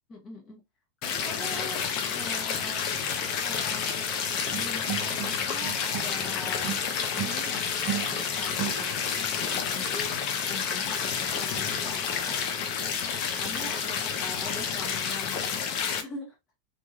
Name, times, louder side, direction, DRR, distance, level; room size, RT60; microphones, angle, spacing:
voice 1, 0.1-0.6 1.0-1.8 2.1-2.8 3.4-3.8 4.5-6.7 7.1-7.6 8.0-13.0 13.3-16.4, left 2 dB, 20° left, 1.0 m, -43 dB
sound 1, 1.0-16.0, left 7 dB, 40° left, 0.6 m, -30 dB
sound 2, 4.5-6.3 6.6-9.2, right 11 dB, 40° right, 0.4 m, -36 dB
3.2 x 2.5 x 2.3 m
supercardioid pair, 165°, 0 cm